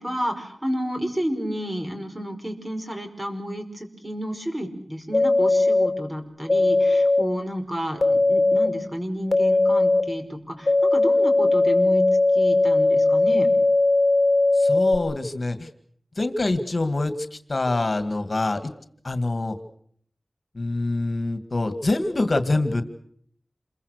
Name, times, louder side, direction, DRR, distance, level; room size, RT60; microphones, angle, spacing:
voice 1, 0.0-12.0 12.3-13.5, equal, 25° right, 6 dB, 5.4 m, -31 dB
sound 1, 5.1-5.9 6.5-7.2 8.0-8.7 9.3-10.0 10.7-15.0, left 2 dB, 35° left, 3.1 m, -19 dB
voice 2, 14.5-15.7 16.2-18.7 19.0-19.6 20.5-22.8, left 2 dB, 55° left, 9 dB, 2.1 m, -25 dB
28.0 x 22.5 x 6.7 m, 0.63 s
wide cardioid pair, 50°, 0 cm